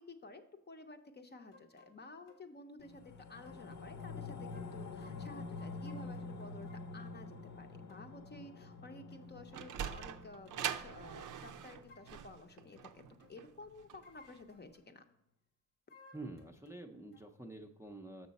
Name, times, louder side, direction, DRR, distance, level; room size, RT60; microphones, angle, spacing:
voice 1, 0.0-13.0 13.3-15.0, left 2 dB, 30° left, 6 dB, 0.6 m, -53 dB
sound 1, 1.5-2.0 2.3-2.4 2.8-2.9 3.5-4.1 4.5-7.0 7.9-8.1 8.6-8.8 9.1-9.3 9.7-10.9 11.6-12.3 12.7-12.9 13.2-13.4 13.8-14.9 15.9-16.8 17.1-17.3, left 3 dB, 80° left, 1.1 m, -63 dB
sound 2, 2.8-13.4 13.8-13.9, left 3 dB, 60° left, 0.8 m, -48 dB
Sliding door, 9.2-14.4, right 9 dB, 70° right, 0.5 m, -43 dB
voice 2, 16.1-18.3, right 2 dB, 10° right, 1 dB, 0.5 m, -48 dB
6.7 x 6.3 x 4.0 m, 0.80 s
wide cardioid pair, 120°, 32 cm